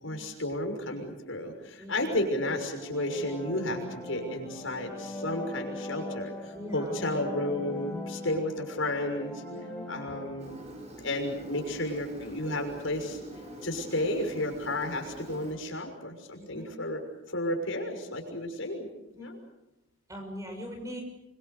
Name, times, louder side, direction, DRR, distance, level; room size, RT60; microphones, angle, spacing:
voice 1, 0.0-9.4 9.9-10.6 11.0-13.2 13.6-17.0 17.3-18.9 19.2-19.4, left 1 dB, 80° left, 4 dB, 6.2 m, -32 dB
voice 2, 1.8-2.2 6.5-6.9 9.7-9.9 16.4-16.7 19.1-19.4 20.1-21.0, equal, 15° right, 4 dB, 6.1 m, -41 dB
sound 1, 2.6-10.5, left 1 dB, 5° left, 5.0 m, -41 dB
Engine, 10.4-15.5, equal, 35° right, 6.7 m, -44 dB
27.5 x 25.0 x 6.9 m, 0.92 s
head